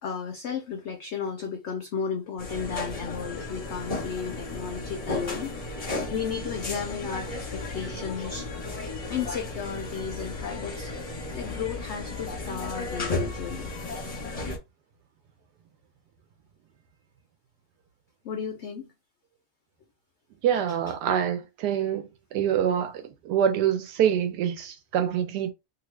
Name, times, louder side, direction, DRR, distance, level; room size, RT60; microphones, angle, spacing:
voice 1, 0.0-8.5 8.8-11.0 11.3-13.7 18.2-18.9, left 6 dB, 75° left, 0.6 m, -34 dB
sound 1, 2.4-14.6, left 2 dB, 35° left, 0.6 m, -34 dB
voice 2, 20.4-22.0 22.3-25.5, right 9 dB, 90° right, 1.2 m, -25 dB
2.8 x 2.6 x 3.1 m
omnidirectional pair, 1.7 m